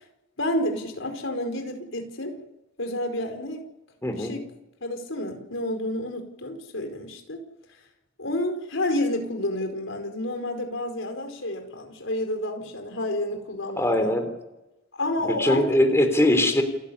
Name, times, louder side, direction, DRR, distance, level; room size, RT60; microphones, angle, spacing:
voice 1, 0.4-2.4 2.8-3.6 4.1-4.4 4.8-7.4 8.2-14.1 15.0-15.6, left 1 dB, 75° left, 5 dB, 4.9 m, -30 dB
voice 2, 4.0-4.3 13.8-14.3 15.2-16.6, left 1 dB, 15° left, 6 dB, 3.5 m, -21 dB
29.0 x 14.5 x 9.7 m, 0.98 s
head